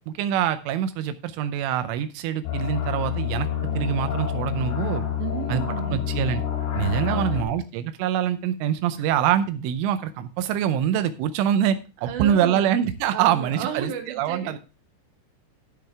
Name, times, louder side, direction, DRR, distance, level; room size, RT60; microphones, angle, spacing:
voice 1, 0.1-3.5 3.8-5.1 5.5-5.6 5.9-6.4 6.7-14.6, right 10 dB, 80° right, 11 dB, 3.1 m, -25 dB
sound 1, 2.4-7.4, left 9 dB, 85° left, 5.1 m, -28 dB
voice 2, 5.2-6.0 7.1-7.5 9.0-9.1 12.0-12.7 13.1-14.6, right 8 dB, 65° right, 4 dB, 2.1 m, -33 dB
13.0 x 6.5 x 3.4 m, 0.32 s
omnidirectional pair, 5.8 m